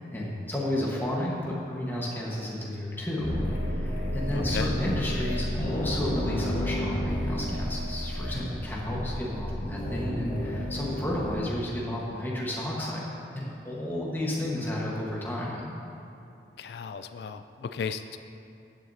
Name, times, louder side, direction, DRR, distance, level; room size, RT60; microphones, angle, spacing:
voice 1, 0.0-3.3 3.6-13.0 13.3-15.6, left 1 dB, 10° left, -5 dB, 1.3 m, -32 dB
sound 1, 3.2-11.4, equal, 50° left, 1.7 m, -31 dB
voice 2, 4.3-4.7 16.6-18.2, left 6 dB, 65° left, 9 dB, 0.3 m, -35 dB
14.5 x 7.9 x 2.8 m, 2.7 s
head